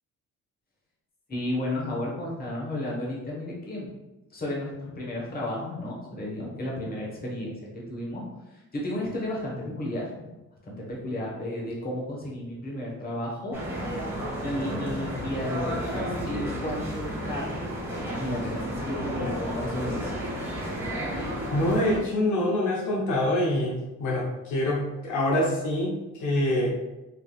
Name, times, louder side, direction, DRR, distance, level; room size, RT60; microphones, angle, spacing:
voice 1, 1.3-3.9 4.3-8.2 8.5-10.3 10.6-13.6 14.4-17.5 18.0-20.1, left 1 dB, 30° left, -3 dB, 1.1 m, -33 dB
sound 1, 13.5-22.0, equal, 5° right, 1.1 m, -32 dB
voice 2, 21.5-26.7, left 1 dB, 75° left, -2 dB, 0.7 m, -25 dB
3.3 x 2.7 x 2.3 m, 1.0 s
cardioid pair, 90°, 30 cm